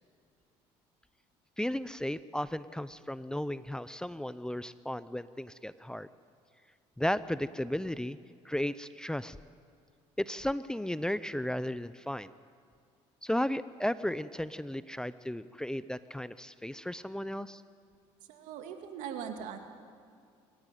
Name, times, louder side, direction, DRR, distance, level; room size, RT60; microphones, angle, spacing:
voice 1, 1.6-6.1 7.0-8.2 8.4-9.4 10.2-12.3 13.2-17.6, left 1 dB, 5° left, 15 dB, 0.6 m, -34 dB
voice 2, 18.3-19.6, right 8 dB, 75° right, 5 dB, 2.3 m, -40 dB
24.5 x 15.0 x 9.3 m, 2.3 s
supercardioid pair, 80°, 13 cm